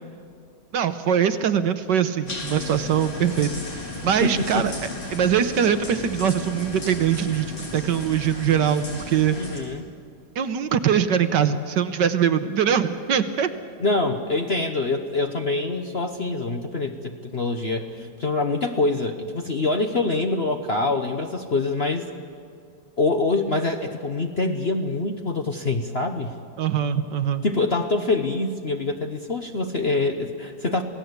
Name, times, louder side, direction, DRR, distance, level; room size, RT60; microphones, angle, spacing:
voice 1, 0.7-3.5 4.0-4.7 5.1-7.5 7.7-9.4 10.4-13.5 26.6-27.4, right 8 dB, 65° right, 10 dB, 1.4 m, -22 dB
sound 1, 2.3-9.6, left 1 dB, 70° left, 4.7 m, -35 dB
voice 2, 4.2-4.7 9.3-9.9 13.8-22.1 23.0-26.3 27.4-30.8, left 3 dB, 40° left, 5 dB, 1.0 m, -25 dB
27.5 x 17.5 x 8.1 m, 2.3 s
omnidirectional pair, 2.2 m